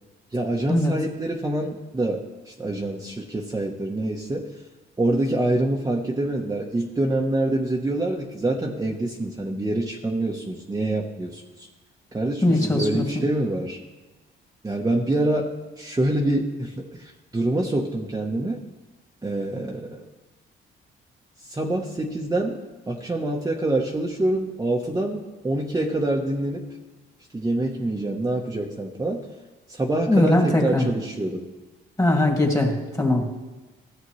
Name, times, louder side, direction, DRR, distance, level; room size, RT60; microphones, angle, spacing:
voice 1, 0.3-4.5 5.0-11.7 12.1-13.8 14.6-18.6 19.2-20.0 21.4-22.6 22.9-26.6 27.3-29.3 29.7-31.5, right 1 dB, 15° right, -1 dB, 1.0 m, -26 dB
voice 2, 12.4-13.0 30.1-30.8 32.0-33.3, left 1 dB, 15° left, 1 dB, 2.1 m, -20 dB
14.5 x 8.0 x 3.2 m, 1.2 s
cardioid pair, 90°, 20 cm